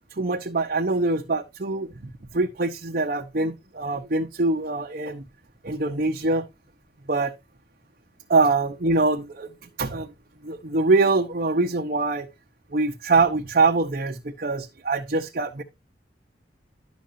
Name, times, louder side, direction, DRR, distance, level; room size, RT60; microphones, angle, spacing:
voice 1, 0.2-5.2 5.6-6.5 7.1-7.3 8.3-9.5 9.8-10.1 10.4-12.3 12.7-15.6, right 3 dB, 50° right, 0.9 m, -24 dB
11.5 x 6.2 x 2.7 m
head